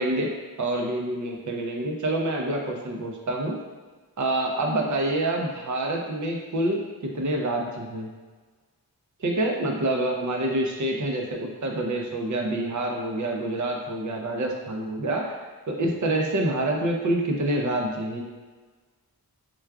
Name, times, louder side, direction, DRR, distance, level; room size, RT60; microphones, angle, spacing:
voice 1, 0.0-3.6 4.2-8.1 9.2-15.4 15.7-18.2, right 1 dB, 50° right, 1 dB, 0.5 m, -27 dB
4.5 x 2.3 x 2.2 m, 1.4 s
wide cardioid pair, 60°, 37 cm